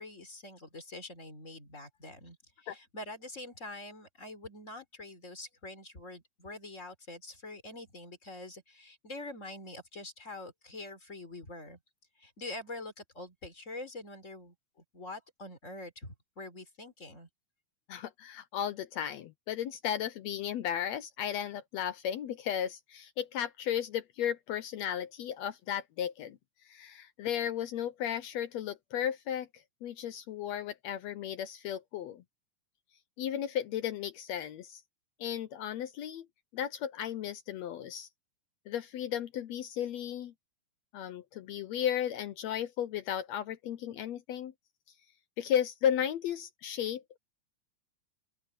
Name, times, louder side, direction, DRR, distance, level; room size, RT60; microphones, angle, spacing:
voice 1, 0.0-11.8 12.2-14.5 14.9-17.3, left 2 dB, 20° left, 4.2 m, -45 dB
voice 2, 17.9-26.4 26.6-32.2 33.2-34.8 35.2-36.3 36.5-38.1 38.7-40.3 40.9-44.5 45.4-47.2, left 10 dB, 75° left, 1.6 m, -34 dB
open air
omnidirectional pair, 3.9 m